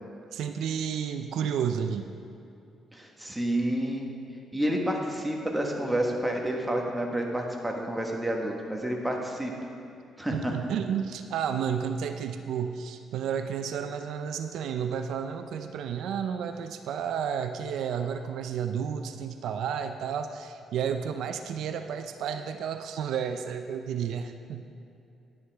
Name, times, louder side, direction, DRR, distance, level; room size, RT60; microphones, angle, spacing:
voice 1, 0.3-2.1 10.3-24.7, right 7 dB, 80° right, 7 dB, 0.4 m, -31 dB
voice 2, 2.9-4.1 4.5-9.7 10.2-10.5, right 1 dB, 10° right, 0 dB, 1.4 m, -29 dB
11.0 x 9.5 x 3.5 m, 2.6 s
cardioid pair, 90°, 0 cm